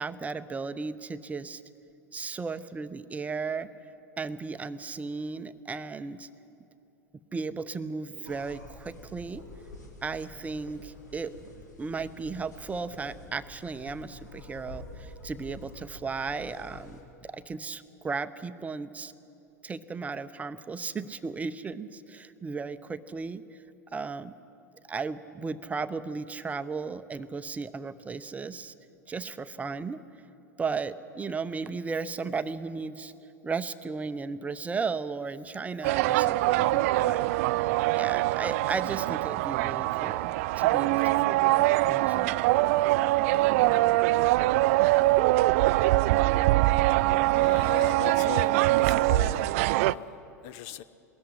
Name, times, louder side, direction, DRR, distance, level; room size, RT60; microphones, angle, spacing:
voice 1, 0.0-1.6 2.1-3.7 4.2-6.3 7.3-9.4 10.0-11.3 11.8-19.1 19.6-23.4 23.9-24.3 24.9-28.7 29.1-30.0 30.6-33.1 33.4-37.3 38.0-42.8 43.6-44.0, right 4 dB, 15° right, 12 dB, 0.7 m, -35 dB
sound 1, 8.3-17.0, left 2 dB, 80° left, 2.7 m, -47 dB
sound 2, 35.8-49.9, right 18 dB, 55° right, 0.4 m, -23 dB
voice 2, 47.3-50.8, left 10 dB, 50° left, 16 dB, 0.7 m, -39 dB
19.5 x 13.5 x 10.0 m, 2.8 s
figure-of-eight pair, 90°, 9 cm